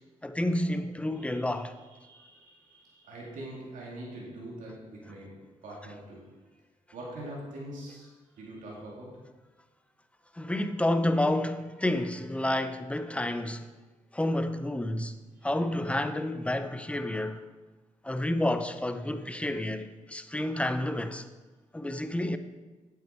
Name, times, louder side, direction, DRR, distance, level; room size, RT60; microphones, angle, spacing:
voice 1, 0.2-1.7 10.4-13.6 14.1-15.2 15.4-17.4 18.0-21.2 21.7-22.4, left 1 dB, 10° left, 0.6 m, -29 dB
voice 2, 1.1-6.3 6.9-9.2 15.3-15.5, right 1 dB, 80° right, 2.3 m, -44 dB
8.4 x 7.8 x 4.3 m
cardioid pair, 90°, 13 cm